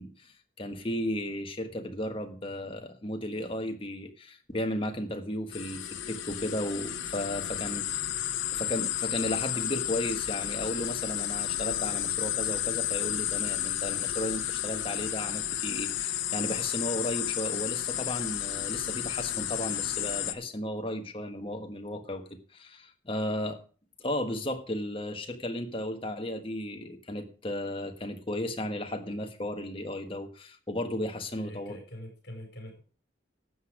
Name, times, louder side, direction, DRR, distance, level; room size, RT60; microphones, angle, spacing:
voice 1, 0.0-8.1 8.5-22.2 22.5-23.6 24.0-31.8, left 1 dB, 30° left, 5 dB, 1.4 m, -34 dB
sound 1, 5.5-20.3, left 11 dB, 85° left, 1.0 m, -32 dB
voice 2, 31.3-32.8, equal, 55° left, 1 dB, 5.2 m, -44 dB
12.5 x 8.1 x 5.0 m, 0.39 s
head